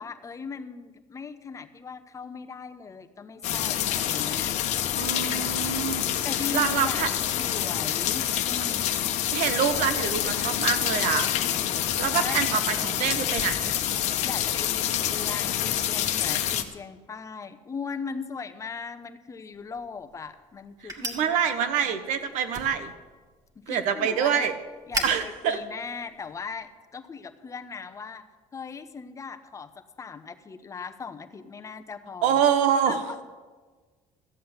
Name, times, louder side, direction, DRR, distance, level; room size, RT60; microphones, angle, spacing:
voice 1, 0.0-4.5 5.1-5.6 6.2-7.0 7.4-9.1 12.1-12.4 14.0-22.0 23.5-24.5 24.9-28.2 28.5-29.7 30.0-32.4 32.8-33.2, left 5 dB, 25° left, 7 dB, 0.9 m, -39 dB
sound 1, 3.4-16.6, left 10 dB, 65° left, 1.0 m, -27 dB
voice 2, 5.0-6.0 6.5-7.1 9.3-11.3 11.9-13.7 21.0-22.9 23.7-24.5 25.0-25.6 32.2-33.0, right 8 dB, 85° right, 10 dB, 1.2 m, -26 dB
sound 2, 19.5-26.7, right 2 dB, 30° right, 2.1 m, -40 dB
14.0 x 7.8 x 8.0 m, 1.4 s
cardioid pair, 130°, 12 cm